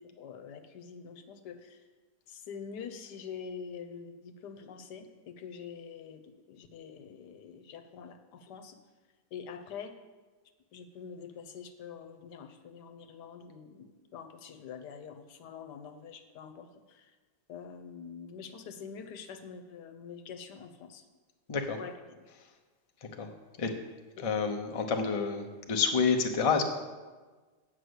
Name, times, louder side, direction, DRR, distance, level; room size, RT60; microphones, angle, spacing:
voice 1, 0.0-1.8 2.3-8.8 9.3-9.9 10.7-17.1 17.5-21.0 21.8-22.3 24.2-24.3, left 6 dB, 85° left, 7 dB, 1.4 m, -45 dB
voice 2, 24.2-26.6, left 5 dB, 30° left, 4 dB, 0.6 m, -29 dB
8.0 x 6.0 x 7.9 m, 1.3 s
omnidirectional pair, 1.8 m